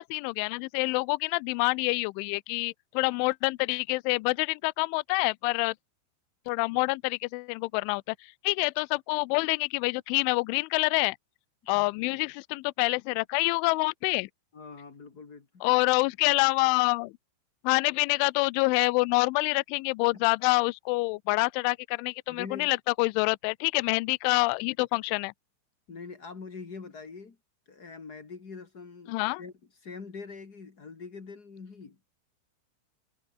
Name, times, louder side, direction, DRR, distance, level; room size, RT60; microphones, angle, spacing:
voice 1, 0.0-5.8 6.5-11.2 11.7-14.3 15.6-17.1 17.6-25.3 29.1-29.4, left 27 dB, 85° left, 2.8 m, -27 dB
voice 2, 11.7-12.2 14.5-15.8 22.3-22.7 25.9-27.4 27.6-29.5 29.8-32.0, left 4 dB, 55° left, 1.0 m, -44 dB
omnidirectional pair, 6.0 m